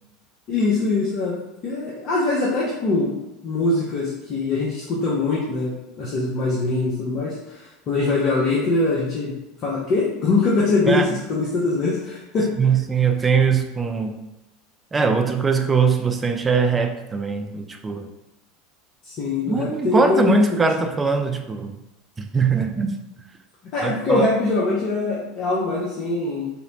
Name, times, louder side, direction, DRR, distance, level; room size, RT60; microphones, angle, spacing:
voice 1, 0.5-1.4 1.6-9.3 9.6-11.0 11.3-12.5 19.1-20.7 23.7-26.5, left 3 dB, 45° left, -6 dB, 0.5 m, -23 dB
voice 2, 12.6-14.2 14.9-18.1 19.5-21.7 22.2-23.0 23.8-24.3, right 5 dB, 20° right, 5 dB, 0.3 m, -21 dB
2.8 x 2.0 x 2.6 m, 0.93 s
figure-of-eight pair, 80°, 0 cm